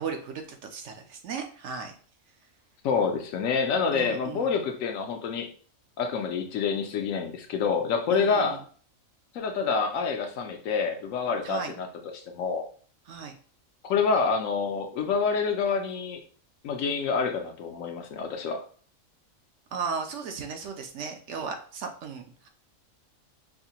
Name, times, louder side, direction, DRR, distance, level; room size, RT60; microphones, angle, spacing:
voice 1, 0.0-1.9 3.9-4.5 8.1-8.6 11.4-11.7 13.1-13.3 19.7-22.5, right 5 dB, 70° right, 5 dB, 0.8 m, -36 dB
voice 2, 2.8-5.5 6.0-8.6 9.3-11.9 12.1-12.6 13.8-16.2 16.6-18.6, left 5 dB, 75° left, 4 dB, 1.0 m, -27 dB
4.7 x 2.1 x 2.8 m, 0.44 s
omnidirectional pair, 1.4 m